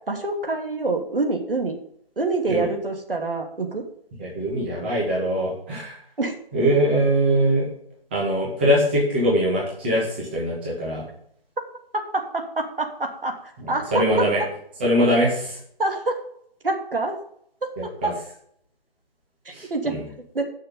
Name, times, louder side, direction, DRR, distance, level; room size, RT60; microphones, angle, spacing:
voice 1, 0.0-1.8 2.2-3.9 6.2-6.4 11.9-14.3 15.8-16.2 16.6-17.2 17.6-18.1 19.5-20.0 20.3-20.5, right 3 dB, 70° right, 4 dB, 2.9 m, -26 dB
voice 2, 4.2-5.9 6.5-7.7 8.1-11.0 13.9-14.4 14.8-15.6 17.8-18.1 19.5-20.0, equal, 10° right, -6 dB, 2.1 m, -22 dB
14.5 x 6.6 x 5.4 m, 0.67 s
figure-of-eight pair, 175°, 29 cm